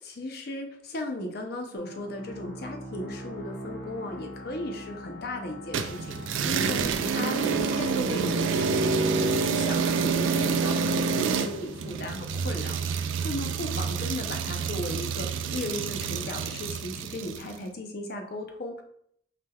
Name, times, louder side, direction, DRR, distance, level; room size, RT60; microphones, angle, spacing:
voice 1, 0.0-18.8, left 1 dB, 55° left, 3 dB, 0.7 m, -36 dB
sound 1, 1.7-13.1, left 1 dB, 75° left, 1.1 m, -43 dB
sound 2, 5.7-17.5, right 5 dB, 90° right, 0.4 m, -28 dB
5.8 x 3.3 x 2.3 m, 0.68 s
head